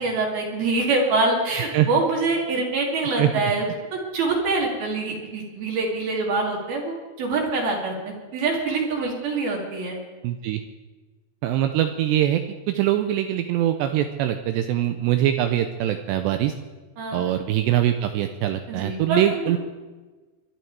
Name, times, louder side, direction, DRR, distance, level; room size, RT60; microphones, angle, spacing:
voice 1, 0.0-3.7 3.9-6.9 7.2-10.0 17.0-17.2 18.7-19.6, right 3 dB, 55° right, -1 dB, 4.0 m, -25 dB
voice 2, 10.2-10.6 11.4-12.4 12.7-16.5 17.1-19.6, right 12 dB, 80° right, 7 dB, 2.6 m, -23 dB
23.5 x 11.0 x 4.7 m, 1.3 s
omnidirectional pair, 5.4 m